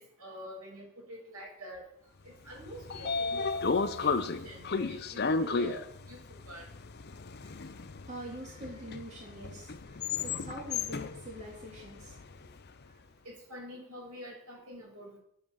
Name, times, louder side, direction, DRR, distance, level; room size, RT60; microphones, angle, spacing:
voice 1, 0.0-1.8 2.5-5.8 6.1-6.6 13.2-15.2, equal, 85° right, -2 dB, 6.0 m, -46 dB
Train / Sliding door, 2.5-12.6, left 4 dB, 45° left, 0.6 m, -34 dB
voice 2, 7.5-12.5, equal, 35° right, -3 dB, 3.3 m, -45 dB
9.0 x 8.7 x 7.1 m, 0.71 s
head